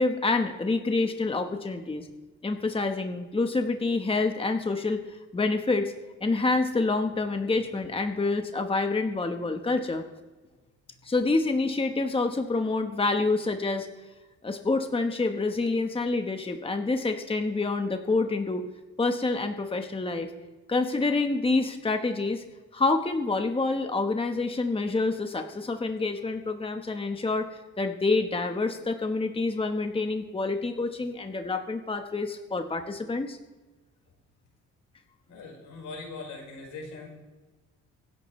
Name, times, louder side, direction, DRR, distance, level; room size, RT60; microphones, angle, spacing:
voice 1, 0.0-2.1 2.4-5.9 6.2-10.0 11.0-13.9 14.4-18.6 19.0-20.3 20.7-22.4 22.7-33.4, left 3 dB, 20° left, 5 dB, 1.3 m, -27 dB
voice 2, 35.3-37.1, left 3 dB, 80° left, 0 dB, 5.0 m, -41 dB
24.5 x 11.0 x 3.3 m, 1.2 s
cardioid pair, 90°, 30 cm